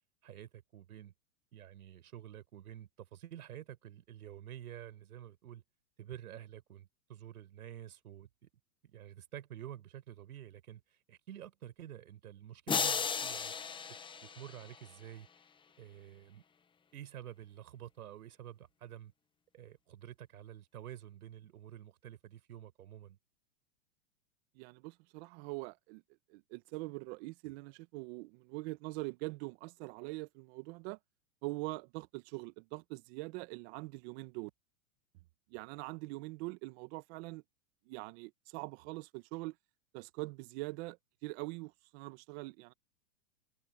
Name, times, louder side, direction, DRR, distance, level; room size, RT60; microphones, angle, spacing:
voice 1, 0.2-1.1 1.5-5.6 6.0-8.5 8.8-10.8 11.1-13.5 14.2-15.3 15.8-16.4 16.9-19.1 19.5-23.2, right 11 dB, 80° right, 4.9 m, -49 dB
sound 1, 12.7-15.0, left 6 dB, 10° left, 0.9 m, -35 dB
voice 2, 24.6-26.0 26.3-31.0 31.4-34.5 35.5-37.4 37.9-39.6 39.9-42.7, right 23 dB, 45° right, 1.7 m, -43 dB
hypercardioid pair, 135°, 43 cm